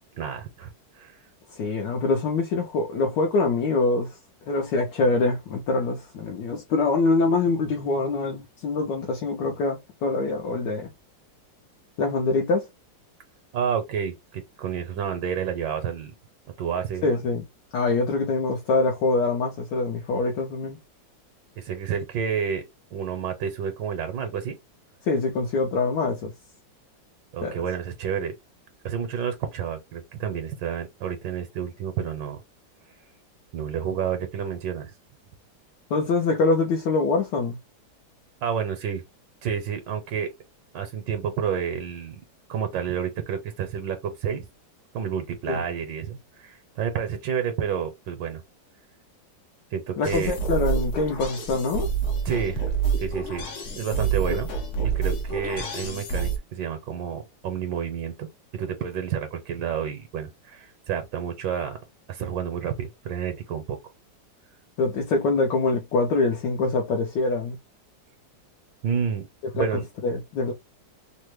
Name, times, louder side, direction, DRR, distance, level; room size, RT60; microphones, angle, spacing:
voice 1, 0.2-0.7 0.9-1.2 13.5-16.1 16.6-17.1 21.6-22.6 22.9-24.6 27.3-28.3 28.8-32.4 33.5-34.9 38.4-39.0 39.4-40.3 40.7-42.1 42.5-44.4 44.9-48.4 49.7-50.3 52.2-52.7 53.0-53.4 53.7-54.5 54.8-61.8 62.1-63.8 68.8-69.3 69.5-69.9, right 7 dB, 75° right, 1.3 m, -30 dB
voice 2, 1.5-4.2 4.5-10.9 12.0-12.7 17.0-17.4 17.7-20.8 25.0-26.3 27.4-27.6 35.9-37.6 45.5-45.6 50.0-51.9 54.3-54.4 64.8-67.6 69.6-70.5, left 3 dB, 75° left, 1.3 m, -24 dB
sound 1, 50.0-56.4, right 5 dB, 60° left, 0.8 m, -28 dB
3.4 x 2.1 x 3.0 m
omnidirectional pair, 2.0 m